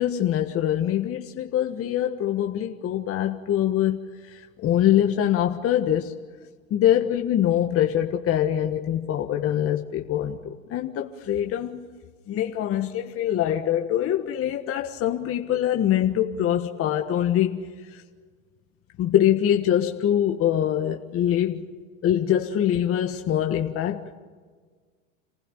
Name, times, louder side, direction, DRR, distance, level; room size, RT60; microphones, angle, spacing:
voice 1, 0.0-6.1 6.7-11.8 12.3-18.0 19.0-21.7 22.0-24.0, left 11 dB, 35° left, 1.5 m, -24 dB
27.5 x 16.0 x 9.9 m
hypercardioid pair, 115°, 42 cm